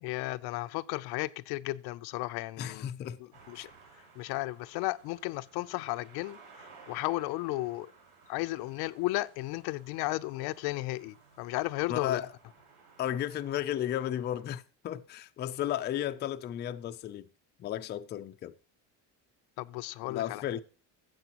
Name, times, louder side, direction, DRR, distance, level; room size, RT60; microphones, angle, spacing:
voice 1, 0.0-2.9 3.5-3.7 4.2-7.9 8.3-12.2 19.6-20.5, left 19 dB, 85° left, 0.6 m, -34 dB
voice 2, 2.6-3.2 3.6-3.7 11.9-12.3 13.0-17.3 17.6-18.5 20.1-20.6, left 11 dB, 30° left, 0.4 m, -34 dB
sound 1, 3.3-14.4, right 4 dB, 80° right, 5.5 m, -58 dB
15.5 x 7.7 x 2.9 m
cardioid pair, 165°, 37 cm